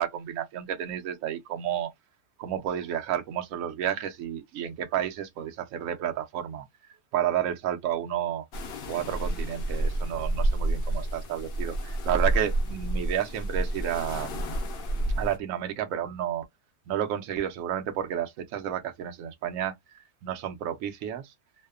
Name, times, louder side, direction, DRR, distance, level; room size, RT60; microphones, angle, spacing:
voice 1, 0.0-1.9 2.4-6.6 7.1-8.4 8.9-14.4 15.2-16.5 16.9-19.7 20.2-21.2, right 10 dB, 65° right, 0.9 m, -31 dB
sound 1, 8.5-15.4, right 1 dB, 80° left, 0.5 m, -29 dB
2.7 x 2.1 x 2.2 m
omnidirectional pair, 1.8 m